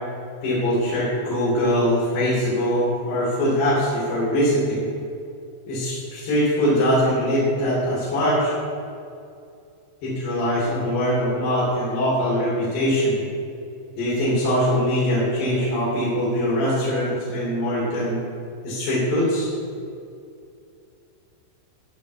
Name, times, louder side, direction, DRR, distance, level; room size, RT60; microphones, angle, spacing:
voice 1, 0.4-4.9 5.7-8.5 10.0-13.2 14.0-18.2 18.6-19.5, equal, 65° left, -9 dB, 5.4 m, -22 dB
14.0 x 6.3 x 8.4 m, 2.5 s
omnidirectional pair, 5.3 m